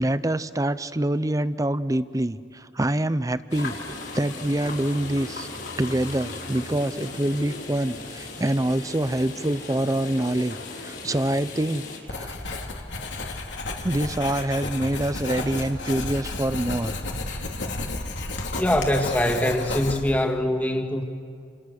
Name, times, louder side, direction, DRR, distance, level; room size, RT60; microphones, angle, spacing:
voice 1, 0.0-3.8 4.1-5.5 5.8-11.8 12.1-12.4 13.8-17.0 17.5-17.6, right 1 dB, 20° right, 14 dB, 0.6 m, -25 dB
sound 1, 3.5-12.0, left 3 dB, 65° left, 5.1 m, -37 dB
Writing, 12.1-20.3, left 2 dB, 80° left, 2.9 m, -32 dB
voice 2, 18.5-21.0, left 1 dB, 10° left, 3 dB, 2.0 m, -23 dB
29.0 x 27.0 x 6.6 m, 2.3 s
head